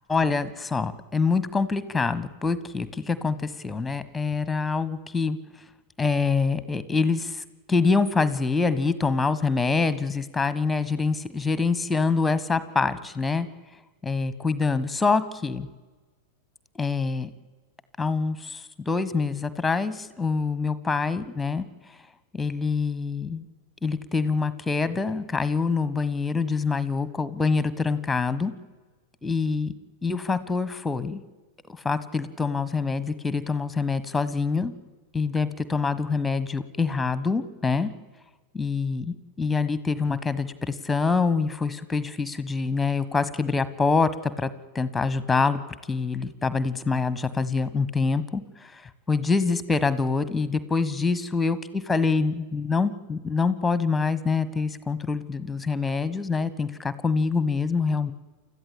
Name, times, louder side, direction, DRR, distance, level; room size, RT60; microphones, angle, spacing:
voice 1, 0.0-5.4 6.0-13.5 14.0-15.7 16.8-17.3 18.0-21.6 22.3-23.5 23.8-28.5 29.2-29.7 30.0-31.2 31.7-34.7 35.1-37.9 38.5-44.5 44.7-45.6 45.9-58.1, left 4 dB, 10° left, 15 dB, 1.4 m, -25 dB
29.5 x 14.0 x 8.8 m, 1.3 s
figure-of-eight pair, 90°, 0 cm